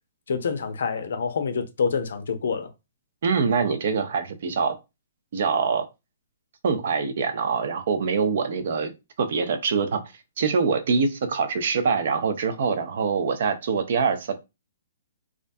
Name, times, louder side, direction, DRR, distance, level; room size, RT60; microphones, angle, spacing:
voice 1, 0.3-2.7, left 5 dB, 70° left, 0.5 m, -27 dB
voice 2, 3.2-4.8 5.3-5.9 6.6-8.9 9.2-10.0 10.4-14.4, right 5 dB, 60° right, 0.5 m, -24 dB
2.4 x 2.1 x 2.5 m
hypercardioid pair, 135°, 0 cm